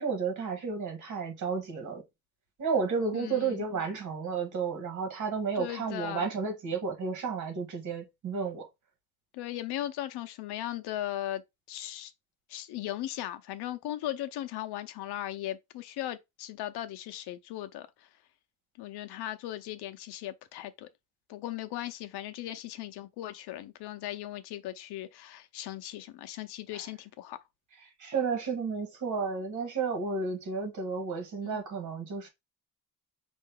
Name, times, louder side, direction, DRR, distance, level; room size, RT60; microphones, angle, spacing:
voice 1, 0.0-2.0 2.6-8.7 28.0-32.3, right 5 dB, 50° right, 1.9 m, -32 dB
voice 2, 3.1-3.6 5.5-6.3 9.3-11.4 11.7-12.1 12.5-18.1 18.8-20.9 21.3-27.4 31.4-31.6, left 13 dB, 80° left, 0.8 m, -38 dB
5.5 x 2.7 x 3.7 m
cardioid pair, 170°, 39 cm